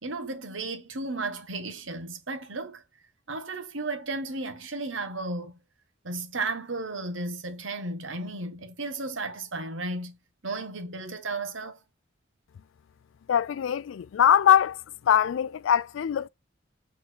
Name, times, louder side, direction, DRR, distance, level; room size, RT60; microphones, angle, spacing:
voice 1, 0.0-2.8 3.3-5.5 6.0-10.1 10.4-11.8, right 2 dB, 90° right, 1.3 m, -34 dB
voice 2, 13.3-14.8 15.1-16.3, left 9 dB, 85° left, 0.3 m, -22 dB
6.1 x 3.7 x 4.5 m
head